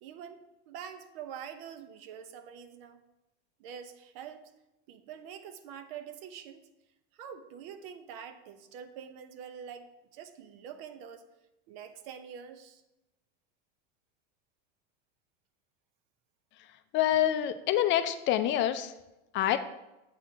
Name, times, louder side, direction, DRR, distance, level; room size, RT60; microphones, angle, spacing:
voice 1, 0.0-3.0 3.6-4.4 4.9-6.7 7.1-11.2 11.7-12.8, right 8 dB, 65° right, 9 dB, 0.9 m, -45 dB
voice 2, 16.9-18.9 19.3-19.6, left 11 dB, 40° left, 10 dB, 0.4 m, -26 dB
7.4 x 4.2 x 4.8 m, 0.95 s
supercardioid pair, 125°, 31 cm